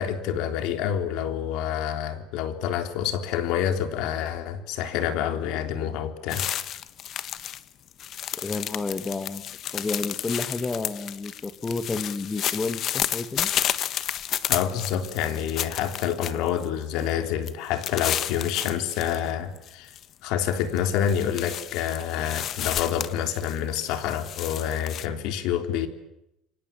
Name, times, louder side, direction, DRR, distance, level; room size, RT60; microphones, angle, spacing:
voice 1, 0.0-6.4 14.5-19.9 20.2-25.9, left 9 dB, 70° left, 3.6 m, -27 dB
sound 1, 6.3-7.6 7.9-16.6 17.0-17.1 17.5-19.2 19.6-20.0 20.4-25.1, left 11 dB, 45° left, 1.4 m, -32 dB
voice 2, 8.4-13.5, left 3 dB, 15° left, 1.8 m, -31 dB
29.0 x 24.5 x 7.4 m
cardioid pair, 130°, 0 cm